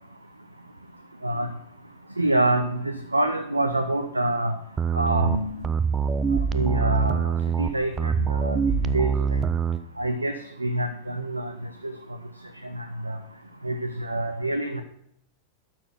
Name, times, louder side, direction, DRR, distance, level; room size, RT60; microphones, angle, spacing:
voice 1, 2.2-4.5 4.9-5.5 6.5-7.3 7.6-9.4 10.0-11.5 11.8-11.9 12.8-13.2 13.6-14.8, right 1 dB, 85° right, 9 dB, 0.5 m, -26 dB
sound 1, 4.8-9.8, right 6 dB, 20° right, 0.5 m, -24 dB
12.0 x 4.4 x 5.9 m, 0.72 s
figure-of-eight pair, 90°, 0 cm